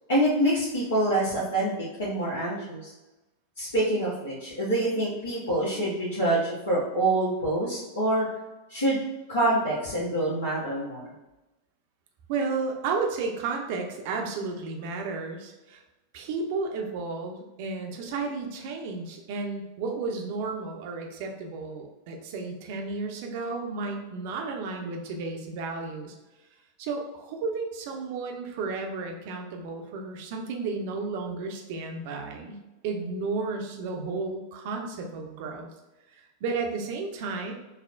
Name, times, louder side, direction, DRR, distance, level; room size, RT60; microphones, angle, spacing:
voice 1, 0.1-1.7 2.0-2.9 3.6-8.3 8.7-9.0 9.3-11.0, right 1 dB, 65° left, -8 dB, 0.9 m, -26 dB
voice 2, 12.3-15.8 16.1-26.1 26.8-32.6 32.8-35.7 36.1-37.5, right 4 dB, 50° right, 2 dB, 0.6 m, -33 dB
5.4 x 2.1 x 2.5 m, 1.0 s
figure-of-eight pair, 90°, 0 cm